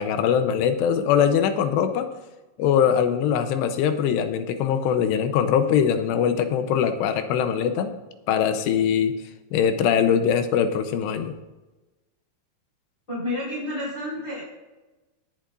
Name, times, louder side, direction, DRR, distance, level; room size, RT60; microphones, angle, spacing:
voice 1, 0.0-2.1 2.6-8.0 8.3-9.1 9.5-11.3, left 8 dB, 80° left, 8 dB, 2.9 m, -22 dB
voice 2, 13.1-14.4, left 1 dB, 15° left, -6 dB, 4.5 m, -30 dB
18.5 x 10.0 x 2.6 m, 1.1 s
omnidirectional pair, 4.9 m